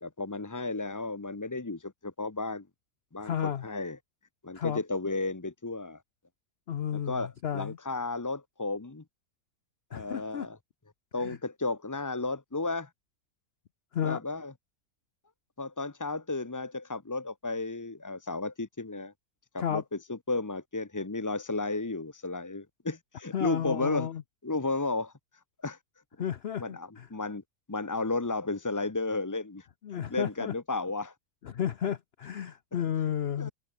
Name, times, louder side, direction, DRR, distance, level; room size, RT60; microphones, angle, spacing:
voice 1, 0.0-2.7 3.1-4.0 4.4-6.0 6.9-9.0 9.9-10.6 11.1-12.9 14.0-14.5 15.6-19.1 19.5-19.8 20.1-24.1 24.4-25.1 25.6-25.8 26.6-27.4 27.7-29.7 29.9-31.1 33.4-33.5, left 3 dB, 20° left, 0.5 m, -33 dB
voice 2, 3.2-3.6 4.5-4.8 6.7-7.8 9.9-10.5 11.2-11.4 13.9-14.2 19.6-19.8 23.3-24.2 26.2-27.1 29.8-30.5 31.4-33.5, left 9 dB, 55° left, 0.8 m, -32 dB
omnidirectional pair, 1.7 m